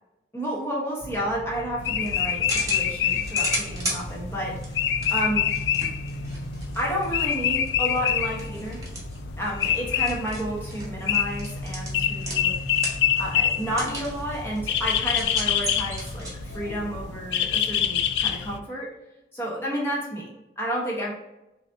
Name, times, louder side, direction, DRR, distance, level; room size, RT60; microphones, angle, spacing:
voice 1, 0.3-4.8 5.1-5.5 6.7-8.8 9.4-12.6 13.2-18.9 19.3-21.1, equal, 15° left, -4 dB, 1.0 m, -31 dB
sound 1, 1.0-17.2, right 1 dB, 60° right, 0.5 m, -42 dB
sound 2, 1.8-18.6, left 9 dB, 80° left, 0.3 m, -27 dB
sound 3, 1.8-16.7, right 2 dB, 20° right, 1.2 m, -37 dB
6.0 x 2.8 x 2.6 m, 0.93 s
head